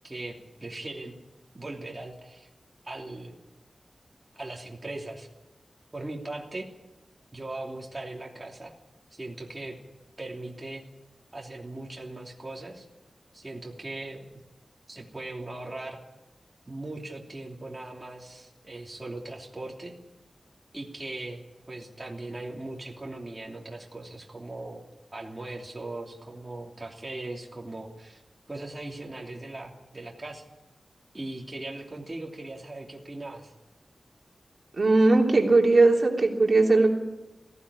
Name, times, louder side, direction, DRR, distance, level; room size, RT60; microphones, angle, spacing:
voice 1, 0.0-1.2 1.5-2.5 2.8-3.3 4.3-5.3 5.9-6.7 7.3-8.7 9.1-9.8 10.2-10.8 11.3-12.9 13.3-14.3 14.9-16.0 16.7-19.9 20.7-24.8 25.1-28.2 28.5-30.4 31.1-33.5, right 2 dB, 25° right, -1 dB, 3.1 m, -39 dB
voice 2, 34.8-36.9, right 3 dB, 50° right, 0 dB, 3.2 m, -19 dB
18.0 x 16.0 x 10.0 m, 1.0 s
wide cardioid pair, 90°, 0 cm